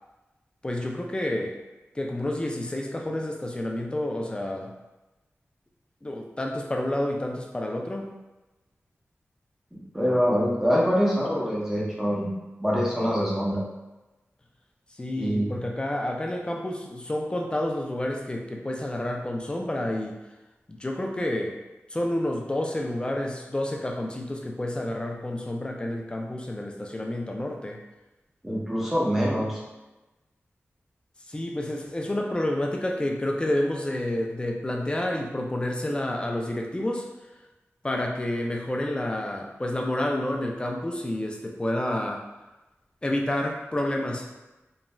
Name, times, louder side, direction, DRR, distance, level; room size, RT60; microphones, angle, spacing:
voice 1, 0.6-1.6 1.9-4.7 6.0-8.2 15.0-20.2 20.7-21.6 21.9-27.8 31.3-37.1 37.8-42.2 43.0-44.3, left 1 dB, 20° left, 1 dB, 0.4 m, -29 dB
voice 2, 9.7-12.3 12.6-13.6 15.2-15.6 28.4-29.6, equal, 5° right, -5 dB, 0.8 m, -25 dB
3.0 x 2.4 x 2.2 m, 1.1 s
wide cardioid pair, 80°, 5 cm